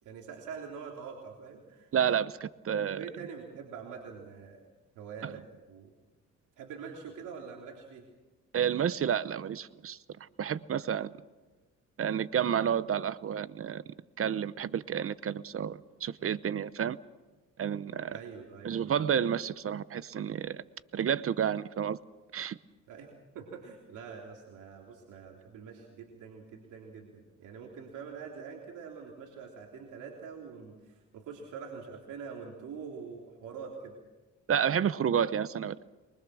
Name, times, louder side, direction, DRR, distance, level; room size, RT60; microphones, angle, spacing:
voice 1, 0.0-1.9 2.9-4.6 4.9-5.9 6.6-8.1 18.1-18.7 22.9-34.0, right 6 dB, 80° right, -1 dB, 3.5 m, -45 dB
voice 2, 1.9-3.0 5.2-5.3 8.5-10.0 10.4-11.1 12.0-13.8 14.2-17.0 17.6-18.2 18.6-20.6 20.9-22.0 22.3-22.6 34.5-35.8, right 8 dB, 50° right, 16 dB, 0.8 m, -30 dB
24.0 x 23.0 x 6.3 m, 1.2 s
cardioid pair, 90°, 30 cm